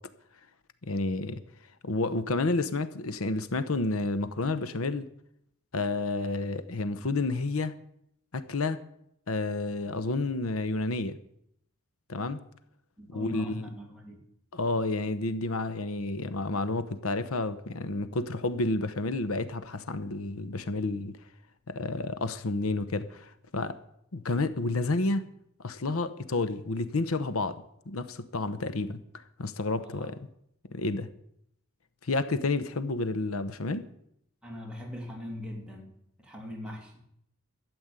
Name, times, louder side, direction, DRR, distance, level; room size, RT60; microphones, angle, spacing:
voice 1, 0.8-1.4 1.8-5.1 5.7-7.8 8.3-8.8 9.3-11.2 12.1-12.4 13.1-13.7 14.5-21.1 21.7-23.8 24.1-25.3 25.6-29.0 29.4-30.3 30.7-31.1 32.0-33.9, left 2 dB, 85° left, 0.9 m, -30 dB
voice 2, 13.0-14.2 29.8-30.1 34.4-35.9 36.2-37.0, left 1 dB, 5° right, 3.0 m, -41 dB
12.5 x 8.0 x 9.6 m
head